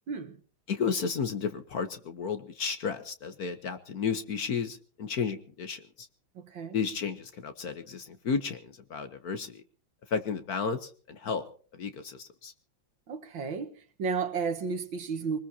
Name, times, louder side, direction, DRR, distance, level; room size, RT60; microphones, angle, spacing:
voice 1, 0.1-0.4 6.4-6.8 13.1-15.4, right 5 dB, 70° right, 2.1 m, -33 dB
voice 2, 0.7-6.1 6.7-8.6 8.9-9.6 10.1-11.4 11.8-12.5, left 6 dB, 55° left, 1.3 m, -33 dB
24.0 x 20.0 x 2.8 m
omnidirectional pair, 2.2 m